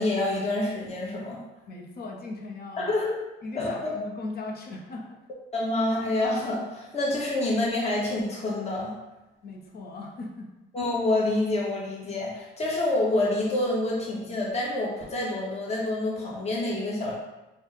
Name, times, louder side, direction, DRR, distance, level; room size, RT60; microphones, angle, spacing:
voice 1, 0.0-1.4 2.8-3.1 3.5-3.9 5.5-8.9 10.7-17.2, left 2 dB, 35° left, -4 dB, 1.0 m, -27 dB
voice 2, 1.7-2.9 3.4-5.2 9.4-10.5, left 2 dB, 50° left, 0 dB, 0.7 m, -38 dB
3.4 x 2.1 x 4.0 m, 1.0 s
cardioid pair, 90°, 20 cm